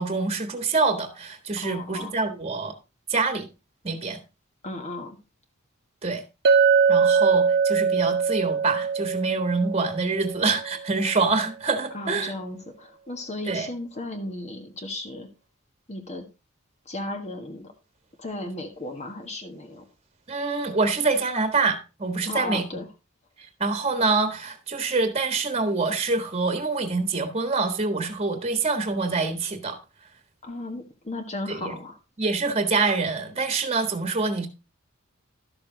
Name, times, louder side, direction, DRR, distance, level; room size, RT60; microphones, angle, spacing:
voice 1, 0.0-2.7 3.1-3.5 3.8-4.2 6.0-6.2 6.9-12.3 13.5-13.7 20.3-22.6 23.6-29.8 31.5-31.7 32.2-34.5, right 3 dB, 30° right, 1.5 m, -25 dB
voice 2, 1.6-2.2 4.6-5.2 11.9-15.3 15.9-16.3 16.8-17.7 18.2-19.8 22.3-22.9 30.4-32.0, left 2 dB, 30° left, 1.5 m, -35 dB
Chink clink, 6.4-10.9, right 6 dB, 50° right, 0.8 m, -22 dB
12.0 x 6.9 x 4.0 m
head